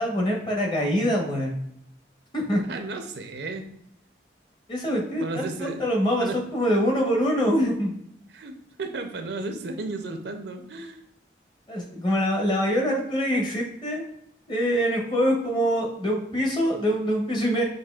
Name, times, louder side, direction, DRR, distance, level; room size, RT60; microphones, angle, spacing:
voice 1, 0.0-1.6 2.3-2.6 4.7-7.9 11.7-14.0 14.5-17.6, equal, 25° left, 0 dB, 0.8 m, -24 dB
voice 2, 2.6-3.7 5.2-5.8 6.2-6.4 8.3-11.0, right 3 dB, 70° right, 6 dB, 0.5 m, -34 dB
5.9 x 2.7 x 2.3 m, 0.73 s
head